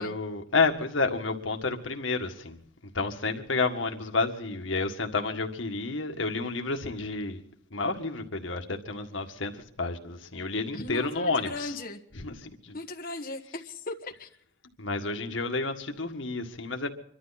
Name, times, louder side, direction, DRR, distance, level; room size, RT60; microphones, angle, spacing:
voice 1, 0.0-2.6 2.9-7.4 7.7-11.7 12.1-12.7 14.8-16.9, left 3 dB, 80° left, 1.8 m, -30 dB
voice 2, 10.7-12.0 12.7-14.3, left 2 dB, 50° left, 1.5 m, -37 dB
25.5 x 12.5 x 4.1 m
head